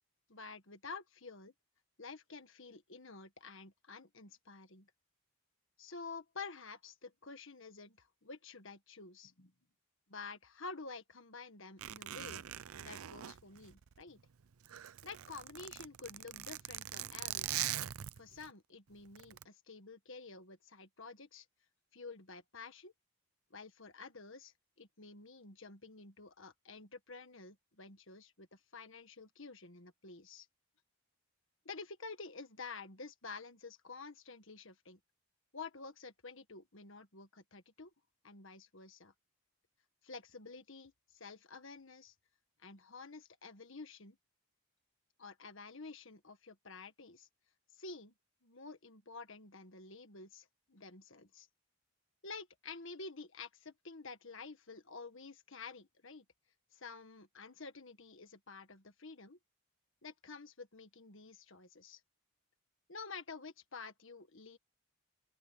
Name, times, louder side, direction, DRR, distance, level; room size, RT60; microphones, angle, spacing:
voice 1, 0.3-1.5 2.0-4.9 5.8-9.5 10.1-12.4 12.8-14.2 15.0-17.6 18.2-21.4 21.9-22.9 23.5-30.5 31.6-35.0 35.5-37.9 38.2-39.1 40.0-42.1 42.6-44.2 45.2-47.3 47.7-48.1 48.4-51.5 52.2-56.2 56.7-59.4 60.0-62.0 62.9-64.6, left 4 dB, 60° left, 1.7 m, -50 dB
Zipper (clothing), 11.8-14.2 14.5-18.5 19.1-19.4, right 12 dB, 75° right, 0.5 m, -42 dB
open air
head